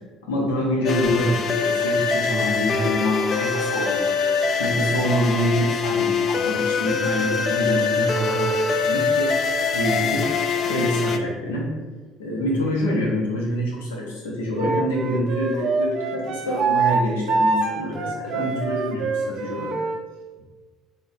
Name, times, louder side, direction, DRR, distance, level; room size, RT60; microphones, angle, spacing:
voice 1, 0.2-4.0 4.6-9.3 9.7-10.3 10.6-11.7 12.2-19.8, equal, 80° left, -3 dB, 0.8 m, -26 dB
sound 1, 0.8-11.2, left 5 dB, 50° left, 0.3 m, -23 dB
Wind instrument woodwind instrument, 14.6-20.0, right 4 dB, 55° right, 0.4 m, -24 dB
4.0 x 2.2 x 3.9 m, 1.4 s
hypercardioid pair, 60°, 0 cm